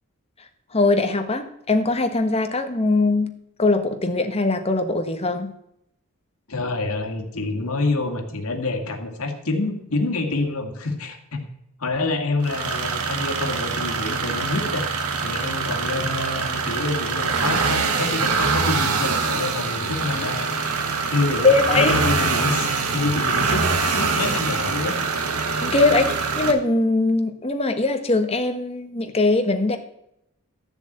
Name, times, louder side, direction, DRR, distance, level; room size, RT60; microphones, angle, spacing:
voice 1, 0.4-5.5 21.4-22.0 25.6-29.8, left 3 dB, 25° left, 7 dB, 1.3 m, -21 dB
voice 2, 6.5-11.5 11.8-14.8 15.2-20.6 21.1-25.0, left 2 dB, 75° left, 4 dB, 2.2 m, -27 dB
sound 1, 12.4-26.5, right 4 dB, 90° right, 1.5 m, -24 dB
13.5 x 7.1 x 8.0 m, 0.79 s
head